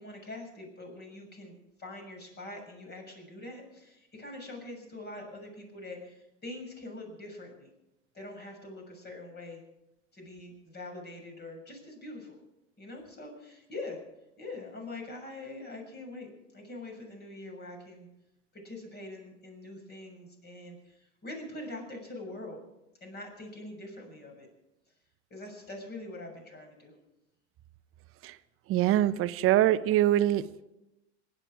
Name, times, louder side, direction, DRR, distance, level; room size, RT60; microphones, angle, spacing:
voice 1, 0.0-7.7 8.1-9.6 10.1-12.4 12.8-14.0 14.4-18.1 18.5-22.6 23.0-24.5 25.3-27.0, left 2 dB, 30° left, 2 dB, 6.9 m, -44 dB
voice 2, 28.7-30.5, right 13 dB, 40° right, 13 dB, 0.9 m, -24 dB
26.5 x 11.0 x 4.9 m, 0.92 s
hypercardioid pair, 95°, 35 cm